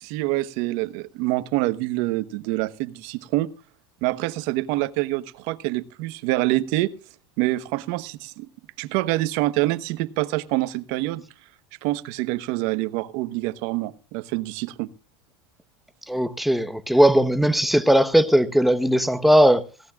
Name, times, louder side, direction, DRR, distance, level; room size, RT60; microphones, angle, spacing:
voice 1, 0.0-3.5 4.0-6.9 7.4-8.5 8.8-11.2 11.8-14.9, right 18 dB, 65° right, 1.1 m, -26 dB
voice 2, 16.1-19.6, equal, ahead, 1.0 m, -18 dB
18.5 x 16.5 x 2.4 m
supercardioid pair, 110°, 13 cm